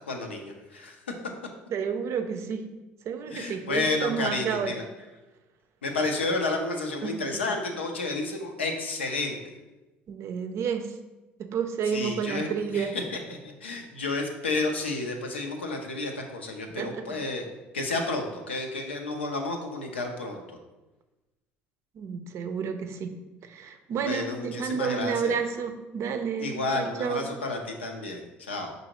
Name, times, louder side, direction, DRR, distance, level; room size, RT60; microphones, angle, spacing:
voice 1, 0.1-1.0 3.3-4.8 5.8-9.5 11.9-17.5 17.7-20.4 24.0-25.3 26.4-28.7, left 3 dB, 90° left, 3 dB, 0.5 m, -31 dB
voice 2, 1.7-2.7 3.1-4.7 7.0-7.1 10.1-11.0 11.4-12.9 16.8-17.2 22.0-23.1 23.4-27.3, right 6 dB, 50° right, 7 dB, 0.5 m, -30 dB
5.5 x 2.6 x 2.9 m, 1.1 s
hypercardioid pair, 60°, 6 cm